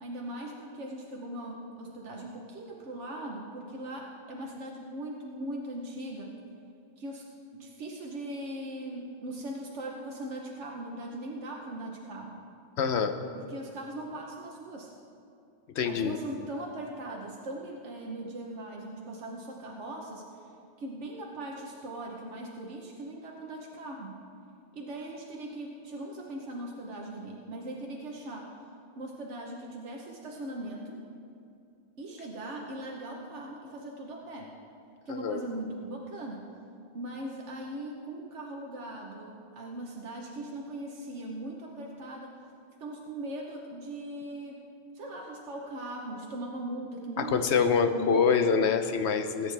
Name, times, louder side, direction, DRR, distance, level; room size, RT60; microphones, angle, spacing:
voice 1, 0.0-6.4 7.0-7.2 7.5-12.4 13.3-14.9 15.8-20.4 20.8-24.2 24.7-28.5 29.0-31.0 32.0-34.5 35.1-36.5 36.9-42.3 42.8-44.6 44.9-48.4, right 1 dB, 90° right, -1 dB, 1.4 m, -39 dB
voice 2, 12.8-13.2 15.7-16.2 35.1-35.4 47.2-49.5, left 6 dB, 75° left, 8 dB, 1.0 m, -25 dB
20.5 x 9.4 x 3.4 m, 2.6 s
omnidirectional pair, 1.2 m